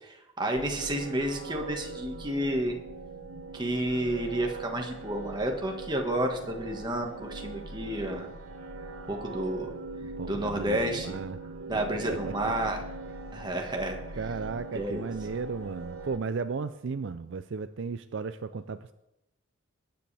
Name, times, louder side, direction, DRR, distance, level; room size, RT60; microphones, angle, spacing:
voice 1, 0.0-2.8 3.5-8.3 9.1-9.7 10.3-11.2 11.7-12.8 13.3-14.0 14.7-15.1, right 1 dB, 20° right, 2 dB, 1.6 m, -31 dB
sound 1, 0.6-16.2, right 3 dB, 90° right, 1.2 m, -41 dB
voice 2, 10.0-11.4 11.9-12.3 14.1-18.9, right 5 dB, 60° right, 11 dB, 0.4 m, -35 dB
20.0 x 10.0 x 3.4 m, 0.89 s
head